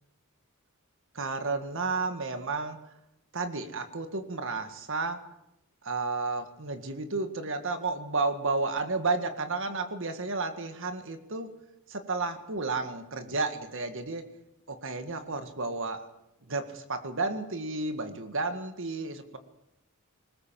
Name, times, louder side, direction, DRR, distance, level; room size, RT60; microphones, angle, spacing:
voice 1, 1.1-2.8 3.3-5.2 5.8-11.5 11.9-14.3 14.7-16.1 16.5-19.4, right 3 dB, 60° right, 9 dB, 1.9 m, -32 dB
20.5 x 19.5 x 7.6 m, 0.87 s
head